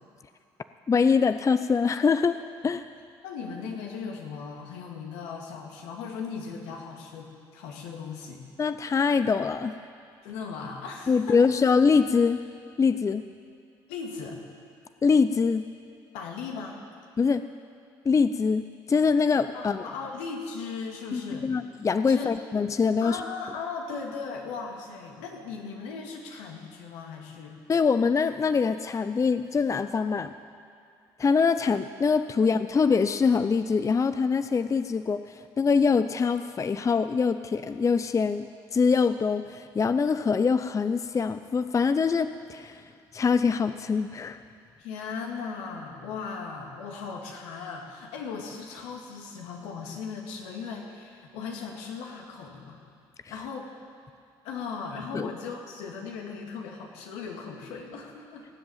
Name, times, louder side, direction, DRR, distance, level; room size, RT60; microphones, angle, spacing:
voice 1, 0.9-2.4 2.6-2.8 8.6-9.8 11.1-12.4 12.8-13.2 15.0-15.6 17.2-17.4 18.1-19.9 21.1-23.2 27.7-30.3 31.2-38.5 38.7-42.8 43.1-44.4 55.1-55.3, left 5 dB, 30° left, 11 dB, 0.5 m, -24 dB
voice 2, 3.2-8.4 10.2-11.4 13.9-14.4 16.1-16.8 19.5-21.5 22.1-22.3 23.0-27.6 44.8-52.8 53.3-53.7 54.4-58.5, left 5 dB, 80° left, 1 dB, 2.1 m, -37 dB
19.0 x 7.9 x 8.6 m, 2.4 s
hypercardioid pair, 65°, 11 cm